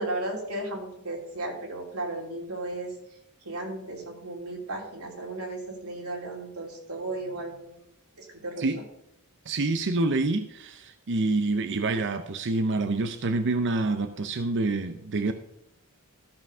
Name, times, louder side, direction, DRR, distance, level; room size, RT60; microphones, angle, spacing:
voice 1, 0.0-7.9 8.2-8.7, right 2 dB, 75° right, 0 dB, 2.9 m, -35 dB
voice 2, 9.5-15.3, right 3 dB, 55° right, 9 dB, 0.6 m, -27 dB
13.5 x 5.7 x 5.5 m, 0.76 s
head